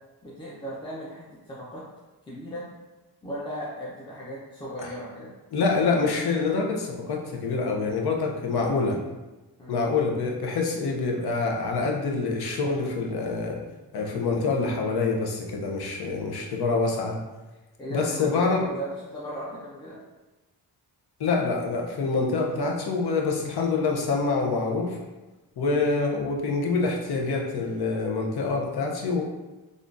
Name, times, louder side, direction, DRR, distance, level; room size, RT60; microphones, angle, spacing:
voice 1, 0.2-1.8 2.3-2.7 3.2-5.3 9.6-9.8 16.0-16.2 17.8-20.0, equal, 10° left, -7 dB, 0.7 m, -37 dB
voice 2, 5.5-9.0 9.7-13.6 13.9-17.2 17.9-18.7 21.2-25.0 25.6-29.2, left 4 dB, 70° left, 1 dB, 0.7 m, -26 dB
3.5 x 2.5 x 2.5 m, 1.1 s
cardioid pair, 85°, 40 cm